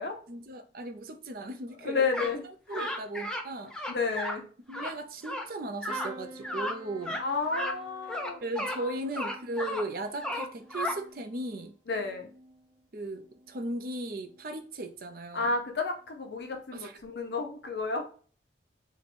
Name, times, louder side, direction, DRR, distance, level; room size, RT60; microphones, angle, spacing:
voice 1, 0.3-2.3 2.7-3.8 4.7-7.2 8.4-11.7 12.9-15.5 16.7-17.0, right 1 dB, 50° right, 0.5 m, -37 dB
voice 2, 1.8-2.4 2.7-2.9 3.9-4.5 7.2-8.4 8.7-9.0 11.9-12.3 15.3-18.1, left 4 dB, 65° left, 0.6 m, -31 dB
sound 1, 2.1-2.3 2.7-3.4 3.7-4.4 4.7-4.9 5.2-5.4 5.8-6.1 6.4-6.8 7.0-7.2 7.5-7.8 8.1-8.8 9.1-9.8 10.2-11.0, left 1 dB, 5° left, 0.4 m, -34 dB
sound 2, 5.9-13.7 14.1-14.7 15.9-16.1 16.4-16.5, right 1 dB, 15° right, 0.9 m, -51 dB
3.0 x 2.2 x 4.1 m
head